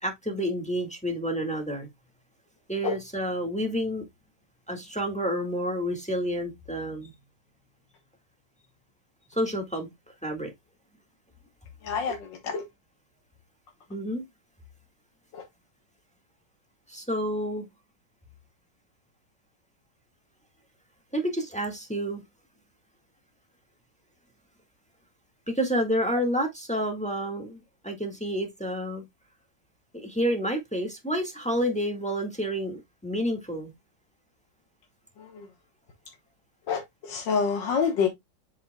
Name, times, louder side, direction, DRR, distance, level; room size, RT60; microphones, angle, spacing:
voice 1, 0.0-1.9 2.7-4.0 4.7-7.1 9.3-9.9 10.2-10.5 13.9-14.2 16.9-17.6 21.1-22.2 25.5-29.0 29.9-33.7, equal, 5° left, 1.6 m, -29 dB
voice 2, 11.8-12.6 15.3-15.4 35.2-35.5 36.7-38.1, left 6 dB, 75° left, 1.9 m, -27 dB
7.6 x 6.6 x 2.3 m
omnidirectional pair, 2.0 m